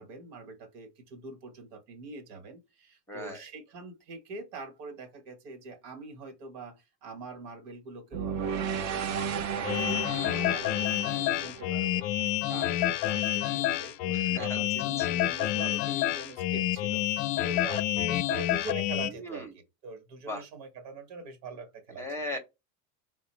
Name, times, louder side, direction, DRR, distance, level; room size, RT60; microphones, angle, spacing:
voice 1, 0.0-22.3, right 4 dB, 75° right, 1.3 m, -44 dB
voice 2, 3.1-3.4 12.5-12.6 14.1-14.6 15.0-15.1 19.2-19.5 20.3-20.4 22.0-22.4, left 1 dB, 5° left, 0.7 m, -37 dB
sound 1, 8.1-12.4, right 7 dB, 35° right, 0.5 m, -34 dB
sound 2, 9.6-19.1, left 14 dB, 55° left, 0.5 m, -28 dB
3.7 x 2.2 x 3.1 m
supercardioid pair, 105°, 49 cm